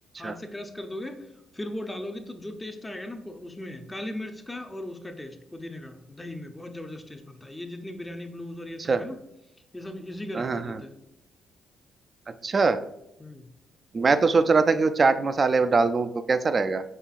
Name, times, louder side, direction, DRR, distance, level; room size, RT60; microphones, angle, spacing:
voice 1, 0.2-9.2 9.7-10.9 13.2-13.5, left 1 dB, 15° left, 6 dB, 0.6 m, -38 dB
voice 2, 10.3-10.8 12.4-12.8 13.9-16.8, right 4 dB, 40° right, 11 dB, 0.3 m, -22 dB
5.6 x 3.4 x 2.4 m, 0.82 s
cardioid pair, 75°, 0 cm